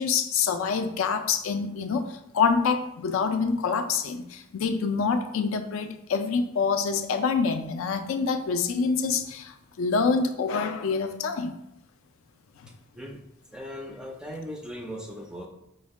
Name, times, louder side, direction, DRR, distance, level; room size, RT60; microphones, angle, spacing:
voice 1, 0.0-11.5 12.6-12.7, left 5 dB, 65° left, 7 dB, 0.4 m, -26 dB
voice 2, 13.5-15.5, equal, 5° right, 2 dB, 0.4 m, -38 dB
5.3 x 2.1 x 3.5 m, 0.84 s
head